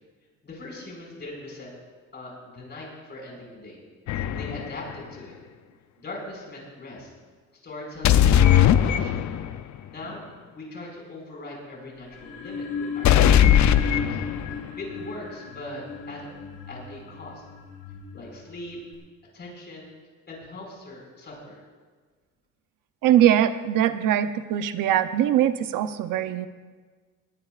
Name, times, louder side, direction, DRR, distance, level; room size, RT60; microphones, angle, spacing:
voice 1, 0.4-1.7 2.1-3.8 4.3-5.3 6.0-7.1 7.6-9.2 9.9-10.2 10.5-14.2 14.8-16.3 16.7-17.4 18.1-18.8 19.3-19.9 20.3-21.6, left 2 dB, 30° left, -2 dB, 5.4 m, -40 dB
sound 1, 4.1-4.7 8.0-9.6 13.0-14.7, left 10 dB, 60° left, 0.6 m, -19 dB
sound 2, 12.0-18.9, left 4 dB, 85° left, 5.3 m, -36 dB
voice 2, 23.0-26.5, right 11 dB, 80° right, 10 dB, 0.8 m, -22 dB
19.5 x 18.5 x 2.5 m, 1.5 s
cardioid pair, 155°, 32 cm